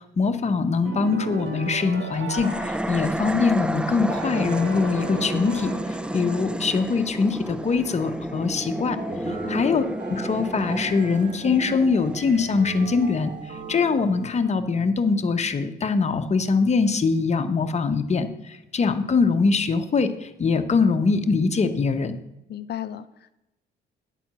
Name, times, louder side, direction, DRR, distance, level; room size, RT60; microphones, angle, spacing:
voice 1, 0.2-2.5 2.9-5.7 6.1-9.0 9.5-9.8 10.1-13.3 13.7-18.3 18.7-22.2, left 4 dB, 35° left, 8 dB, 0.9 m, -22 dB
sound 1, 0.9-3.5 4.1-6.6, right 3 dB, 80° right, 1.8 m, -36 dB
sound 2, 2.3-13.7, right 1 dB, 5° right, 0.3 m, -31 dB
sound 3, 8.9-14.6, right 4 dB, 60° right, 2.1 m, -39 dB
voice 2, 9.2-9.6 22.5-23.3, left 10 dB, 55° left, 13 dB, 0.6 m, -35 dB
10.0 x 4.4 x 7.4 m, 0.90 s
cardioid pair, 90°, 20 cm